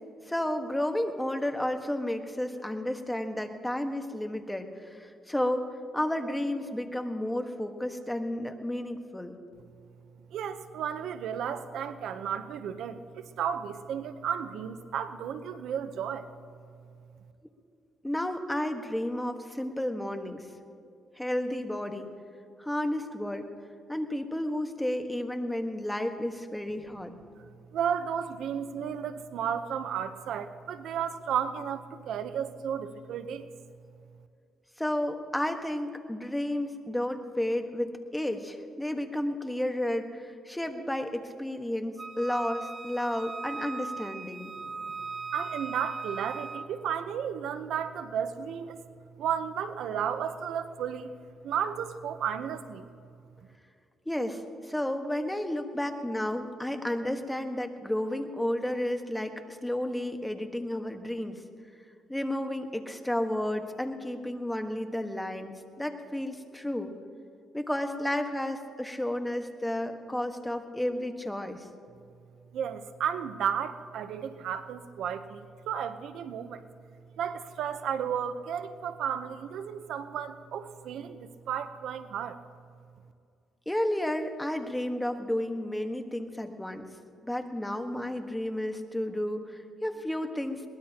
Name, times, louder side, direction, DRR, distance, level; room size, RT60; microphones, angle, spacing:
voice 1, 0.3-5.7 5.9-9.3 18.0-20.5 21.2-22.1 22.6-23.4 23.9-27.2 34.8-44.5 54.0-61.4 62.1-66.9 67.5-71.7 83.6-86.9 87.2-90.6, left 1 dB, 5° left, 6 dB, 1.4 m, -32 dB
voice 2, 10.3-16.3 27.4-33.5 45.3-48.8 49.2-51.1 51.4-52.9 72.5-76.6 77.2-82.4, right 8 dB, 75° right, 10 dB, 0.8 m, -33 dB
Wind instrument woodwind instrument, 42.0-46.7, right 4 dB, 30° right, 0.7 m, -38 dB
22.0 x 19.5 x 2.9 m, 2.5 s
cardioid pair, 90°, 0 cm